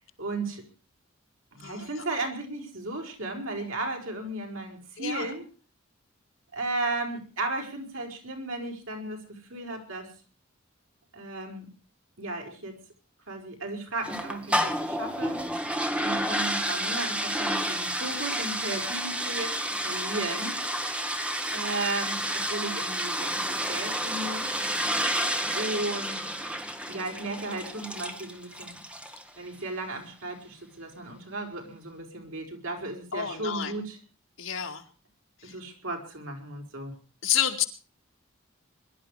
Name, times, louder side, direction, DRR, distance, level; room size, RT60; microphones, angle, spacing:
voice 1, 0.2-0.6 1.5-5.4 6.5-10.1 11.1-11.7 12.2-12.7 13.3-15.4 16.0-20.5 21.5-24.6 25.5-26.3 26.9-28.7 29.4-34.0 35.4-37.0, right 2 dB, 80° right, 3 dB, 5.4 m, -35 dB
voice 2, 1.6-2.0 5.0-5.3 33.1-33.7 34.4-34.8 35.4-35.5 37.2-37.7, left 10 dB, 70° left, 5 dB, 2.4 m, -29 dB
sound 1, 14.0-29.3, equal, 5° right, 1.5 m, -30 dB
22.5 x 12.5 x 5.0 m, 0.37 s
head